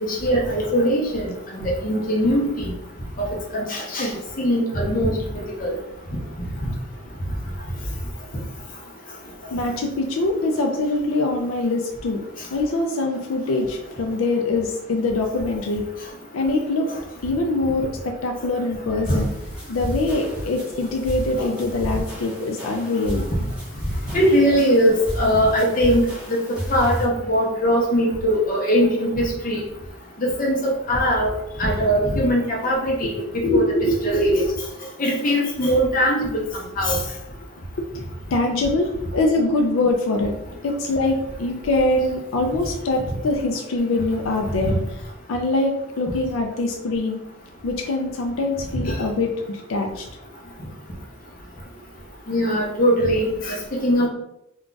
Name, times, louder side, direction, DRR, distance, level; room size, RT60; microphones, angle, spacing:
voice 1, 0.0-2.7 3.2-5.7 16.9-17.0 19.1-19.2 21.4-21.5 24.1-26.1 26.7-29.6 30.2-31.3 31.6-33.1 33.5-33.6 34.0-34.5 35.0-36.3 36.5-37.0 44.7-44.8 48.8-48.9 52.3-53.6 53.8-54.1, equal, 45° left, -2 dB, 0.7 m, -21 dB
voice 2, 9.5-12.2 12.5-15.8 16.3-16.9 17.2-19.3 19.7-23.2 33.0-34.3 37.8-37.9 38.3-40.3 40.6-44.8 45.3-47.2 47.6-50.0, left 2 dB, 85° left, 3 dB, 0.4 m, -23 dB
sound 1, 19.0-27.0, equal, 5° right, 0.8 m, -32 dB
2.4 x 2.3 x 3.8 m, 0.83 s
head